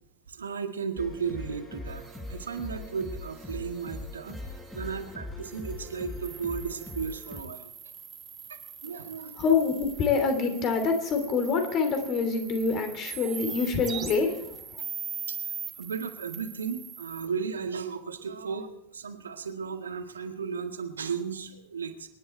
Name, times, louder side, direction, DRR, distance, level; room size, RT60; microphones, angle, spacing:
voice 1, 0.3-7.7 8.5-9.5 15.3-22.1, right 6 dB, 70° right, 5 dB, 1.8 m, -35 dB
sound 1, 1.0-7.4, left 2 dB, 5° left, 4.2 m, -41 dB
sound 2, 1.9-5.1 5.4-17.3, right 7 dB, 20° right, 1.9 m, -42 dB
voice 2, 9.4-14.8, left 5 dB, 35° left, 7 dB, 3.1 m, -26 dB
26.5 x 11.0 x 4.5 m, 0.80 s
figure-of-eight pair, 90°, 0 cm